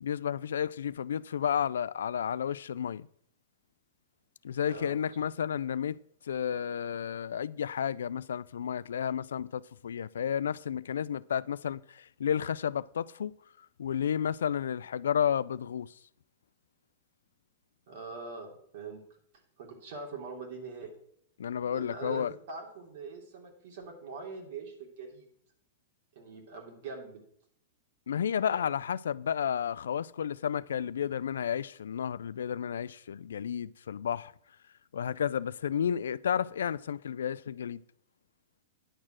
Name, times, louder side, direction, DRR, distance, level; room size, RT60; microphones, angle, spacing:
voice 1, 0.0-3.1 4.4-6.0 6.2-13.3 13.8-15.9 21.4-22.4 28.1-34.3 34.9-37.8, left 8 dB, 90° left, 0.3 m, -32 dB
voice 2, 4.7-5.0 17.9-19.0 19.6-20.9 21.7-25.3 26.1-27.2 28.4-28.7, right 4 dB, 65° right, 3.3 m, -43 dB
10.0 x 6.4 x 6.1 m
hypercardioid pair, 130°, 0 cm